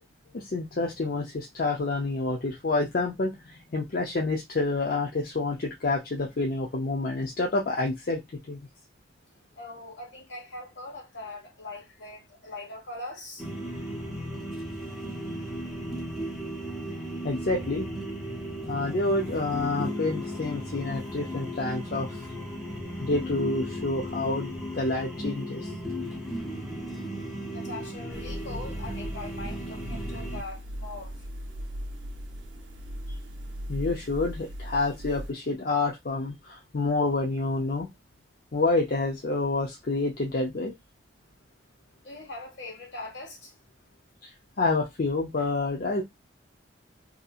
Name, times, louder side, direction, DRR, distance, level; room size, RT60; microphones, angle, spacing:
voice 1, 0.3-8.2 8.5-8.6 17.2-17.9 18.7-22.3 23.0-25.7 33.7-37.9 38.5-40.7 44.2-44.3 44.6-46.0, left 3 dB, 50° left, 0.5 m, -28 dB
voice 2, 9.6-13.9 27.5-31.2 42.0-43.5, left 2 dB, 70° left, 1.3 m, -41 dB
sound 1, 13.4-30.4, equal, ahead, 0.6 m, -35 dB
sound 2, 28.1-35.3, equal, 70° right, 0.6 m, -38 dB
2.7 x 2.6 x 2.3 m
head